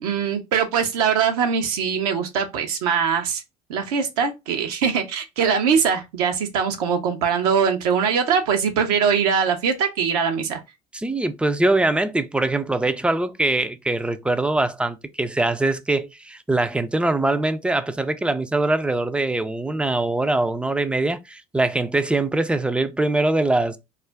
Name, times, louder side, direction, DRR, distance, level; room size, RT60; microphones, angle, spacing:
voice 1, 0.0-3.4 3.7-10.6, right 6 dB, 75° right, 0.6 m, -22 dB
voice 2, 10.9-23.8, right 2 dB, 5° right, 0.3 m, -22 dB
2.4 x 2.1 x 3.3 m
hypercardioid pair, 65°, 20 cm